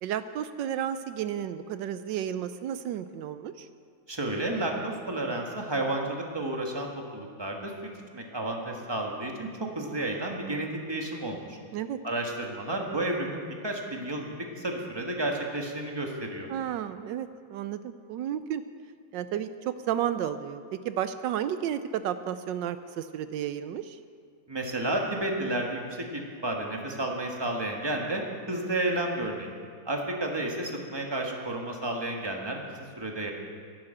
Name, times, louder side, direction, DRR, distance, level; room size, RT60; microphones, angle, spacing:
voice 1, 0.0-3.7 11.7-12.0 16.5-18.6 19.1-24.0, right 10 dB, 70° right, 12 dB, 1.1 m, -32 dB
voice 2, 4.1-11.6 12.0-16.5 24.5-29.5 29.8-32.6 33.0-33.3, right 1 dB, 15° right, 1 dB, 1.3 m, -31 dB
11.5 x 11.0 x 7.8 m, 2.1 s
omnidirectional pair, 2.3 m